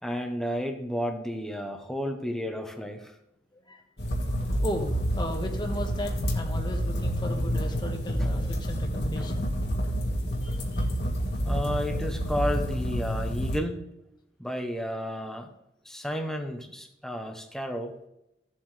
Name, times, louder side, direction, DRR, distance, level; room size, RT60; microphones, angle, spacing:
voice 1, 0.0-3.2 9.2-9.3 11.4-13.9 14.4-15.5 15.8-18.0, equal, ahead, 4 dB, 1.0 m, -32 dB
sound 1, 4.0-13.6, equal, 60° left, 1.7 m, -29 dB
voice 2, 4.2-9.5 10.4-10.9, equal, 25° left, 3 dB, 1.2 m, -36 dB
15.0 x 7.5 x 3.3 m, 0.85 s
head